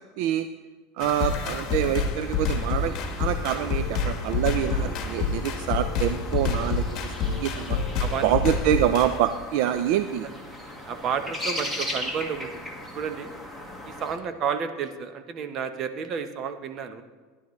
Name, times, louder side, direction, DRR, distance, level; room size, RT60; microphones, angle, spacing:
voice 1, 0.2-0.5 1.0-7.8 8.2-10.3, right 11 dB, 65° right, 10 dB, 0.5 m, -26 dB
sound 1, 1.0-9.2, left 5 dB, 45° left, 1.5 m, -28 dB
sound 2, 2.2-14.2, left 1 dB, 5° right, 1.8 m, -38 dB
voice 2, 8.0-8.5 10.8-13.3 13.8-17.0, right 6 dB, 40° right, 8 dB, 1.0 m, -31 dB
17.0 x 11.0 x 3.2 m, 1.4 s
supercardioid pair, 125°, 0 cm